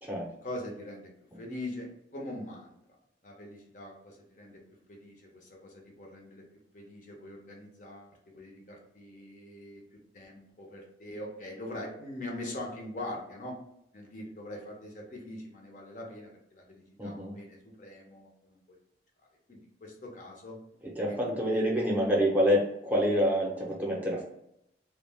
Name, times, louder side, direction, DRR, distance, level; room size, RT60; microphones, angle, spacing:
voice 1, 0.4-1.1 1.4-2.8 3.2-4.6 4.9-6.4 6.7-9.8 10.1-13.6 13.9-18.6 19.5-20.6 21.1-21.9, left 1 dB, 45° left, -1 dB, 0.6 m, -42 dB
voice 2, 17.0-17.3 21.0-24.2, equal, 10° right, -4 dB, 0.6 m, -27 dB
2.3 x 2.1 x 3.3 m, 0.78 s
head